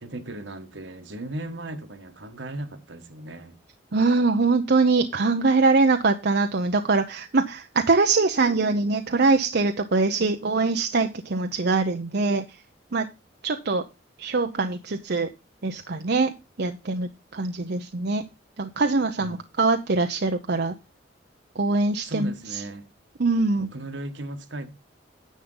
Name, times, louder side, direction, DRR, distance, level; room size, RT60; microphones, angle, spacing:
voice 1, 0.0-3.6 19.2-19.4 22.0-22.9 23.6-24.7, right 1 dB, 80° right, 1.5 m, -36 dB
voice 2, 3.9-12.4 12.9-13.1 13.4-13.8 14.2-15.3 15.6-18.2 18.6-20.7 21.6-22.6 23.2-23.7, right 3 dB, 60° right, 0.7 m, -23 dB
10.5 x 7.4 x 3.9 m
head